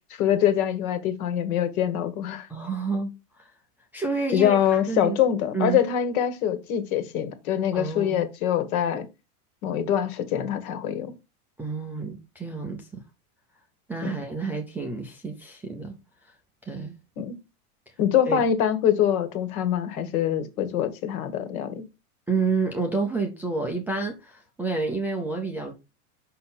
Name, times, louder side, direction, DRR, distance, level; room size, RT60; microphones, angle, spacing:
voice 1, 0.1-2.5 4.3-9.1 9.6-11.1 14.0-14.1 17.2-17.3 18.0-21.8, left 10 dB, 70° left, 1.6 m, -24 dB
voice 2, 2.5-3.5 3.9-5.2 5.5-5.8 7.7-8.2 11.6-13.0 13.9-15.9 16.2-16.3 16.6-16.9 18.3-18.4 22.3-25.7, right 4 dB, 5° right, 0.3 m, -29 dB
5.6 x 5.4 x 4.2 m
supercardioid pair, 140°, 45 cm